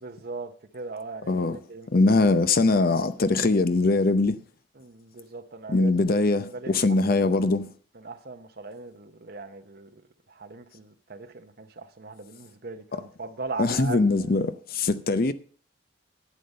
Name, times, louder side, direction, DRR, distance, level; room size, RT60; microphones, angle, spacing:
voice 1, 0.0-1.4 1.7-1.9 4.8-5.9 6.5-7.2 8.0-10.0 10.3-14.1, right 3 dB, 50° right, 0.8 m, -39 dB
voice 2, 1.3-1.6 1.9-4.4 5.7-7.7 12.9-13.0 13.6-15.3, left 3 dB, 45° left, 0.6 m, -22 dB
11.5 x 8.5 x 5.4 m
head